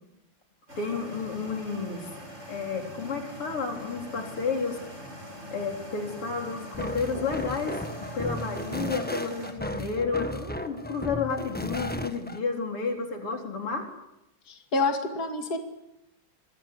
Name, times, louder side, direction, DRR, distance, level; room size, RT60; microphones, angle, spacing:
sound 1, 0.7-9.5, equal, 30° right, 7.5 m, -43 dB
voice 1, 0.8-2.2 2.5-4.8 5.5-13.9, left 4 dB, 80° left, 3 dB, 5.0 m, -31 dB
sound 2, 6.7-12.4, equal, 5° left, 1.1 m, -35 dB
voice 2, 14.5-15.6, left 3 dB, 45° left, 5 dB, 2.9 m, -28 dB
26.5 x 24.0 x 8.3 m, 0.86 s
omnidirectional pair, 2.4 m